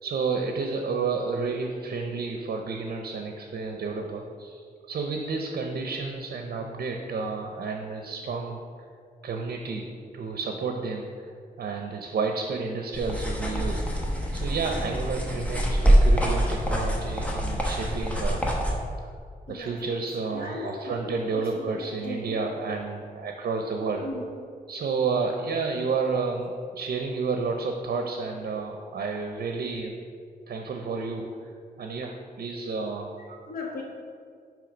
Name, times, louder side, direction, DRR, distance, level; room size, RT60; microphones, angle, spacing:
voice 1, 0.0-8.6 9.2-11.3 11.6-13.9 14.3-18.4 19.5-24.0 24.7-29.9 30.5-31.3 31.8-33.4, right 4 dB, 80° right, 3 dB, 0.6 m, -31 dB
sound 1, 12.9-18.7, equal, 10° left, 1.0 m, -24 dB
voice 2, 19.5-19.8 20.3-22.5 24.0-24.2 29.7-29.8 33.5-33.8, left 2 dB, 70° left, -2 dB, 1.0 m, -37 dB
8.5 x 3.1 x 5.0 m, 2.2 s
wide cardioid pair, 105°, 16 cm